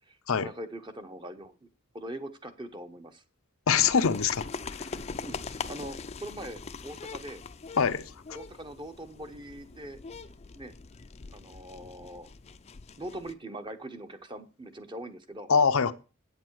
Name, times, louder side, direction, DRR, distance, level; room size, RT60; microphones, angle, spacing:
voice 1, 0.0-1.7 1.9-3.2 5.2-5.4 5.7-7.4 8.3-10.0 10.5-10.7 11.3-12.3 13.0-15.5, right 1 dB, 25° right, 0.8 m, -42 dB
voice 2, 3.7-4.4 4.8-4.9 7.8-8.0 15.5-15.9, left 6 dB, 85° left, 0.6 m, -23 dB
sound 1, 3.7-13.3, left 4 dB, 30° left, 0.4 m, -42 dB
8.5 x 8.0 x 4.6 m
head